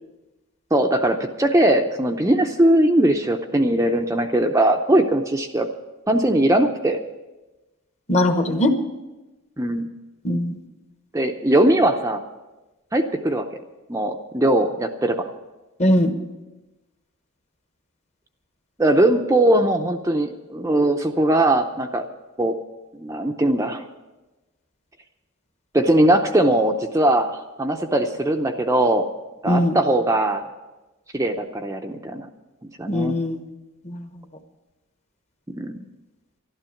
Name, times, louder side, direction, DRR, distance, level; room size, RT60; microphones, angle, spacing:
voice 1, 0.7-5.7 6.1-7.0 9.6-9.9 11.1-12.2 12.9-13.5 13.9-15.3 18.8-22.1 22.4-22.5 22.9-23.8 25.7-29.1 29.4-30.5 31.1-32.3 32.8-33.2 35.6-35.7, right 1 dB, 15° right, 3 dB, 0.6 m, -20 dB
voice 2, 8.1-8.7 10.2-10.6 15.8-16.1 29.4-29.7 32.9-33.4 33.8-34.0, left 1 dB, 30° left, 7 dB, 1.0 m, -20 dB
12.0 x 12.0 x 7.1 m, 1.1 s
head